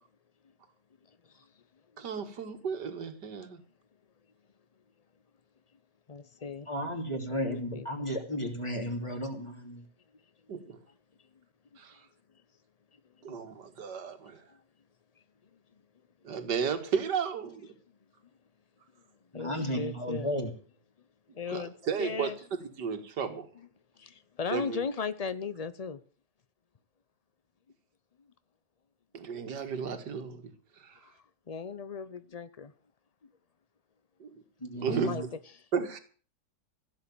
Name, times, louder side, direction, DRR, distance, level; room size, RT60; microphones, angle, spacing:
voice 1, 2.0-3.6 10.5-10.8 11.8-12.0 13.2-14.4 16.2-17.7 21.5-22.3 22.8-23.5 24.5-24.8 29.1-30.4 30.8-30.9 34.2-34.4 34.8-35.1 35.7-36.0, right 6 dB, 75° right, 2.3 m, -33 dB
voice 2, 6.1-6.7 7.1-7.9 13.3-13.4 14.5-14.6 19.3-20.3 21.3-21.7 22.0-22.4 24.0-26.0 31.0-31.1 31.5-32.7 34.9-35.2 35.5-35.7, left 5 dB, 80° left, 0.3 m, -37 dB
voice 3, 6.7-9.8 19.3-20.5 34.6-35.3, equal, 15° left, 3.2 m, -34 dB
16.0 x 7.6 x 8.7 m
omnidirectional pair, 1.8 m